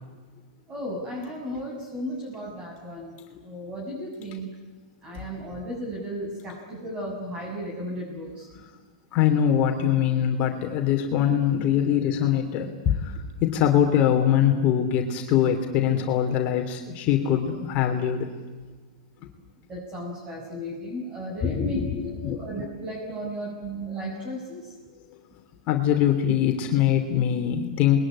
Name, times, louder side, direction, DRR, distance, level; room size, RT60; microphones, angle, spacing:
voice 1, 0.7-3.1 3.4-4.5 5.0-8.5 19.7-24.7, equal, 25° right, -3 dB, 7.7 m, -34 dB
voice 2, 9.1-13.1 13.4-18.3 21.4-22.4 25.7-28.0, left 9 dB, 40° left, 3 dB, 2.8 m, -23 dB
27.5 x 21.5 x 9.9 m, 1.4 s
hypercardioid pair, 130°, 4 cm